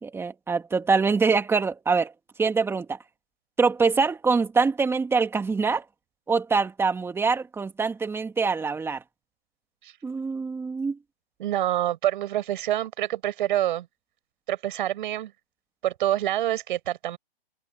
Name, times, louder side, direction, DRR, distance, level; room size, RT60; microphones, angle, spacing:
voice 1, 0.0-2.1 2.4-3.0 3.6-5.8 6.3-9.0 10.0-11.0, right 4 dB, 10° right, 2.2 m, -24 dB
voice 2, 11.4-13.9 14.5-15.3 15.8-17.2, right 13 dB, 55° right, 5.5 m, -26 dB
hypercardioid pair, 140°, 31 cm